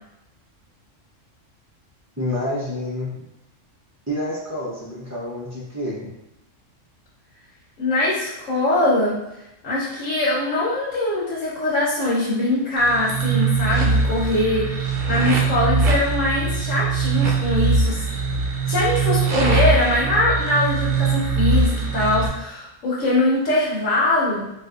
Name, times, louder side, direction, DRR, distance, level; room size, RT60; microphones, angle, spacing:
voice 1, 2.2-3.1 4.1-6.0, left 1 dB, 25° right, -10 dB, 0.3 m, -28 dB
voice 2, 7.8-9.2 9.6-18.0 18.7-24.5, left 2 dB, 80° left, -8 dB, 1.2 m, -22 dB
sound 1, 12.8-22.3, right 4 dB, 80° right, 1.0 m, -21 dB
3.9 x 2.5 x 2.3 m, 0.89 s
omnidirectional pair, 1.3 m